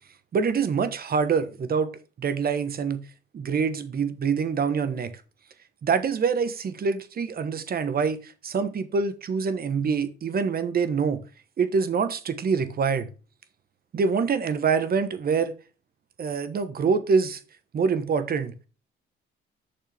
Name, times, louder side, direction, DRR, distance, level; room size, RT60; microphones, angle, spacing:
voice 1, 0.3-1.9 2.2-3.0 3.3-5.1 5.8-11.2 11.6-13.1 13.9-15.5 16.2-17.4 17.7-18.5, right 5 dB, 50° right, 1.3 m, -25 dB
8.9 x 6.6 x 3.5 m
cardioid pair, 90°, 20 cm